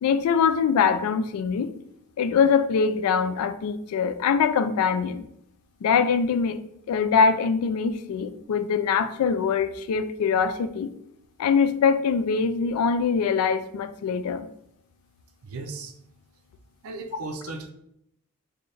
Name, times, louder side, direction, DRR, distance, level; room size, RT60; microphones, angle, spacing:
voice 1, 0.0-1.7 2.2-5.2 5.8-6.6 6.9-10.9 11.4-14.5, left 6 dB, 80° left, 14 dB, 0.3 m, -23 dB
voice 2, 15.4-15.9 16.8-17.7, right 3 dB, 70° right, 6 dB, 0.5 m, -36 dB
4.3 x 2.1 x 3.2 m, 0.76 s
head